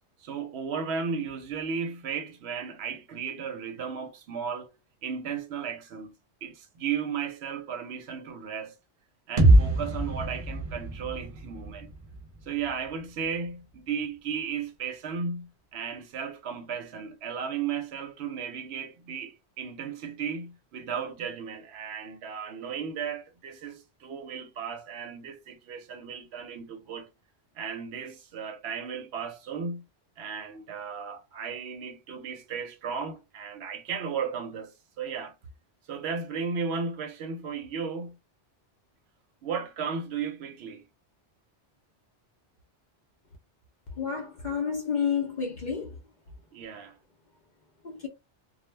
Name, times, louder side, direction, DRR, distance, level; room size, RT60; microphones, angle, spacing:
voice 1, 0.2-4.7 5.0-6.1 6.4-8.8 9.3-11.9 12.5-27.1 27.6-29.8 30.2-35.3 35.9-38.2 39.4-40.8 46.5-47.0, right 6 dB, 70° right, 0.8 m, -35 dB
sound 1, 9.4-13.2, right 1 dB, 45° right, 0.5 m, -25 dB
voice 2, 44.0-45.9 47.8-48.1, left 6 dB, 55° left, 0.6 m, -30 dB
2.2 x 2.0 x 3.1 m
omnidirectional pair, 1.2 m